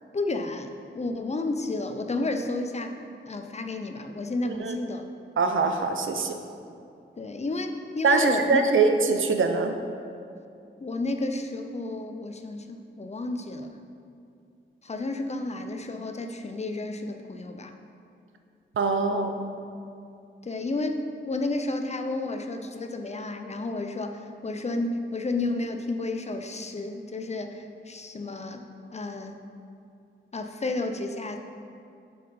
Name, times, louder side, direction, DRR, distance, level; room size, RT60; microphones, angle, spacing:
voice 1, 0.1-3.0 3.3-5.0 7.2-8.6 10.8-13.7 14.8-17.7 20.4-28.7 28.9-29.4 30.3-31.4, left 2 dB, 35° left, 6 dB, 0.5 m, -31 dB
voice 2, 4.5-4.8 5.4-6.4 8.0-9.7 18.8-19.4, right 4 dB, 90° right, 6 dB, 0.6 m, -23 dB
7.5 x 5.4 x 4.2 m, 2.5 s
wide cardioid pair, 125°, 20 cm